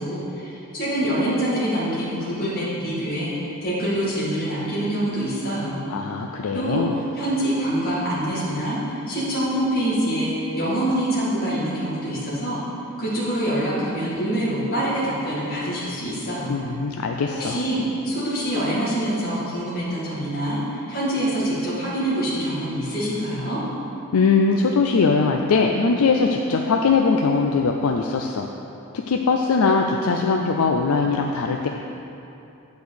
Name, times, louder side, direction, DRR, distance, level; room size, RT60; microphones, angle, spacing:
voice 1, 0.0-5.8 6.5-6.8 7.1-12.6 13.0-16.6 17.4-23.6, right 1 dB, 45° left, -9 dB, 2.1 m, -25 dB
voice 2, 5.9-6.9 16.5-17.6 24.1-28.5 28.9-31.7, left 4 dB, 85° left, 2 dB, 0.5 m, -21 dB
7.9 x 5.3 x 6.4 m, 2.8 s
head